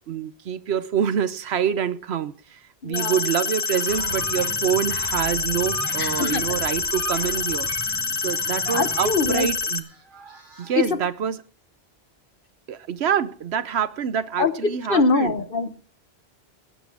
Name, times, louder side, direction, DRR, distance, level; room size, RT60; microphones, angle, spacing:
voice 1, 0.1-9.9 10.6-11.4 12.7-15.3, right 8 dB, 85° right, 15 dB, 1.1 m, -26 dB
voice 2, 2.8-3.2 6.0-6.6 8.7-9.5 10.8-11.0 14.4-15.7, left 4 dB, 60° left, 11 dB, 1.2 m, -23 dB
sound 1, 2.9-9.8, left 4 dB, 40° left, 1.2 m, -27 dB
sound 2, 3.4-4.6 4.8-7.8 8.2-9.2 9.7-10.8, right 4 dB, 50° right, 2.0 m, -40 dB
sound 3, 3.9-9.6, left 2 dB, 15° left, 1.0 m, -41 dB
18.0 x 8.3 x 4.9 m, 0.42 s
omnidirectional pair, 1.1 m